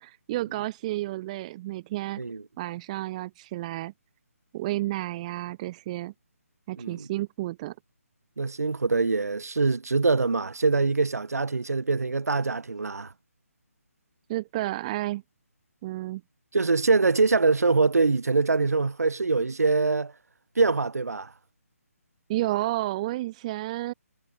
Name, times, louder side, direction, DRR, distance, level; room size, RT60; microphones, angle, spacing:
voice 1, 0.0-2.2 2.6-3.9 4.5-6.1 6.7-7.7 14.3-15.2 15.8-16.2 22.3-23.9, right 16 dB, 25° right, 4.1 m, -31 dB
voice 2, 6.8-7.1 8.4-13.1 16.5-20.1 20.6-21.3, right 3 dB, 75° right, 7.9 m, -24 dB
figure-of-eight pair, 155°, 8 cm